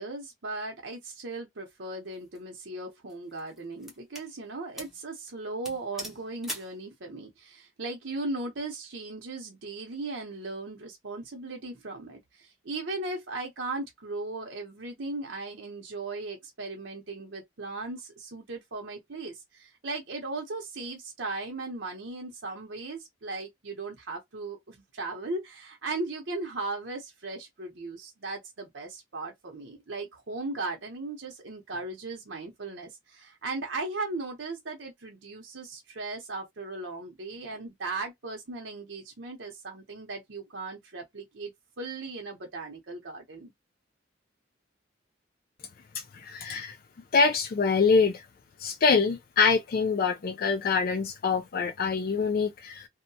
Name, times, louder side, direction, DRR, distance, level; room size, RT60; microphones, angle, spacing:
voice 1, 0.0-41.5 41.8-43.5, right 3 dB, 80° right, 0.8 m, -37 dB
sound 1, 2.1-2.4 3.1-4.3 4.8-5.0 5.3-5.4 5.6-6.8, equal, ahead, 0.7 m, -41 dB
voice 2, 45.9-46.8 47.1-48.2 48.6-52.9, left 5 dB, 50° left, 0.3 m, -25 dB
2.8 x 2.1 x 2.6 m
head